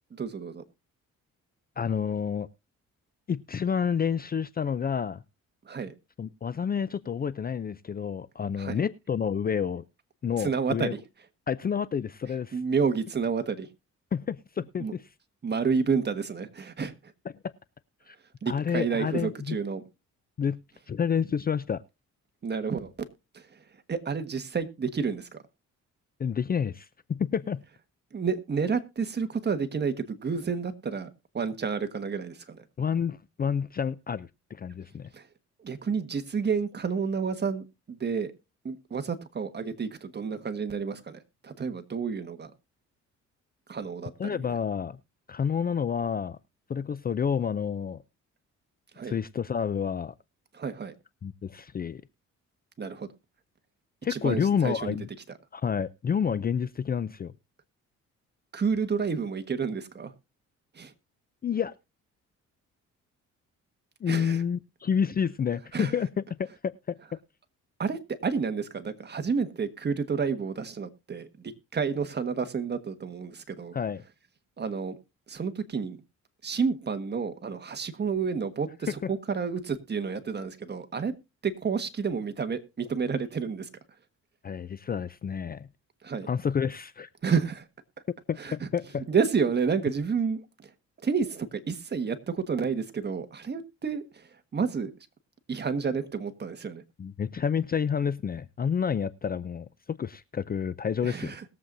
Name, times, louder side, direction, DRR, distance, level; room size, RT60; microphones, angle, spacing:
voice 1, 0.1-0.6 5.6-5.9 8.6-8.8 10.4-11.0 12.5-13.7 14.8-14.9 15.4-16.9 18.4-19.8 22.4-22.9 23.3-23.4 23.9-25.4 28.1-31.1 31.3-32.6 35.1-35.3 35.6-38.3 38.6-42.5 43.7-44.4 48.9-49.2 50.5-50.9 52.8-53.1 54.1-55.0 58.5-60.1 60.7-60.9 64.1-64.4 65.7-65.9 67.8-73.8 74.6-75.0 75.3-76.0 76.4-81.1 81.4-83.7 86.0-86.3 87.2-87.6 88.4-88.7 89.1-90.7 91.0-94.9 95.5-96.8 101.0-101.4, right 5 dB, 35° right, 1.5 m, -30 dB
voice 2, 1.8-2.5 3.3-5.2 6.2-9.8 10.2-10.9 11.5-12.6 14.1-15.0 17.4-17.5 18.1-18.2 18.5-19.6 20.4-20.6 20.9-21.8 26.2-27.6 32.8-35.1 44.2-45.0 45.3-46.4 46.7-48.0 49.0-50.1 51.2-52.0 54.0-55.1 55.5-57.3 61.4-61.7 64.0-67.0 73.7-74.0 79.0-79.1 84.4-85.7 86.3-87.1 88.3-89.0 97.0-101.4, left 7 dB, 30° left, 0.5 m, -29 dB
21.0 x 7.6 x 2.6 m
cardioid pair, 90°, 30 cm